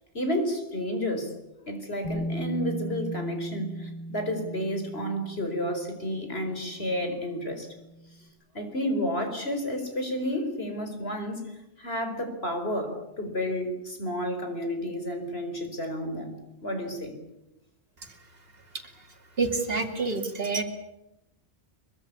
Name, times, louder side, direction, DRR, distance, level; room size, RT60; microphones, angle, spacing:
voice 1, 0.1-1.3 1.7-7.7 8.5-16.3 16.6-17.1, equal, 65° left, 6 dB, 5.1 m, -31 dB
Bass guitar, 2.0-8.1, equal, 20° left, 7.4 m, -38 dB
voice 2, 19.4-20.6, right 3 dB, 60° right, 6 dB, 2.8 m, -27 dB
24.0 x 23.0 x 8.6 m, 0.91 s
omnidirectional pair, 1.1 m